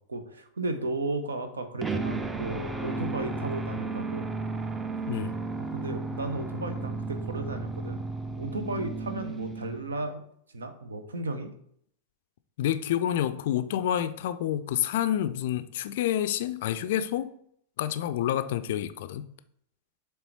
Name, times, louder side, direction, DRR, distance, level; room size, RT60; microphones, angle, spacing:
voice 1, 0.1-4.3 5.7-8.0 8.3-10.2 10.5-11.5, right 2 dB, 70° right, 8 dB, 0.7 m, -34 dB
sound 1, 1.8-10.1, right 3 dB, 15° right, 0.5 m, -34 dB
voice 2, 12.6-17.4 17.8-19.3, left 11 dB, 55° left, 13 dB, 0.4 m, -28 dB
6.9 x 3.3 x 4.5 m, 0.67 s
figure-of-eight pair, 90°, 0 cm